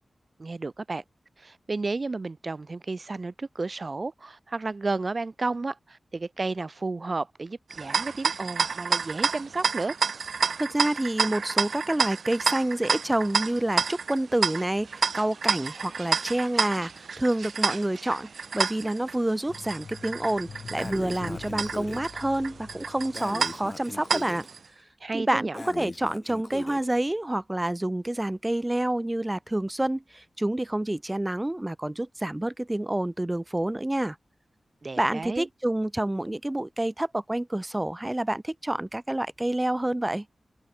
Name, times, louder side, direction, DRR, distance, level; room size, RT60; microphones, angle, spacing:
voice 1, 0.4-1.0 1.4-10.0 25.0-25.6 34.8-35.5, right 3 dB, 35° right, 0.9 m, -32 dB
sound 1, 7.7-24.6, right 5 dB, 70° right, 1.2 m, -30 dB
voice 2, 10.6-24.4 25.1-34.2 35.0-40.3, right 1 dB, 15° right, 0.4 m, -28 dB
sound 2, 19.5-23.9 24.2-24.3, left 5 dB, 75° left, 5.4 m, -45 dB
Breathing, 20.7-22.1 23.1-24.5 25.5-26.9, left 3 dB, 30° left, 4.0 m, -39 dB
wide cardioid pair, 130°, 0 cm